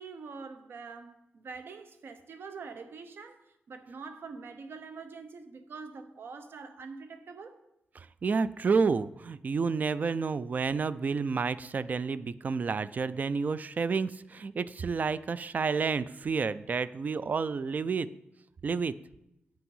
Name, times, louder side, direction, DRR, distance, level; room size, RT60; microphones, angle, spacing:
voice 1, 0.0-7.6, right 4 dB, 70° right, 0.8 m, -45 dB
voice 2, 8.0-18.1 18.6-18.9, right 5 dB, 45° right, 0.4 m, -30 dB
8.8 x 5.9 x 5.5 m
cardioid pair, 95°, 4 cm